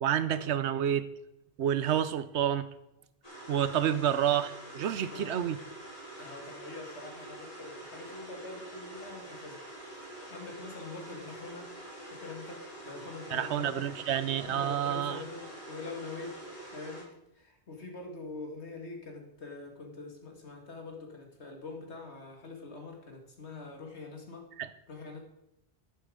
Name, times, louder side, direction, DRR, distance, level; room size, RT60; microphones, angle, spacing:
voice 1, 0.0-1.1 1.6-2.7 3.5-5.6 13.3-15.2 24.6-24.7, right 10 dB, 90° right, 14 dB, 1.0 m, -29 dB
sound 1, 3.2-17.0, right 1 dB, 35° left, 6.0 m, -46 dB
voice 2, 5.0-5.4 6.1-11.7 12.1-13.8 14.5-16.4 16.7-24.5 24.9-25.2, left 3 dB, 85° left, 2 dB, 2.5 m, -44 dB
11.5 x 10.5 x 4.9 m, 0.87 s
omnidirectional pair, 1.1 m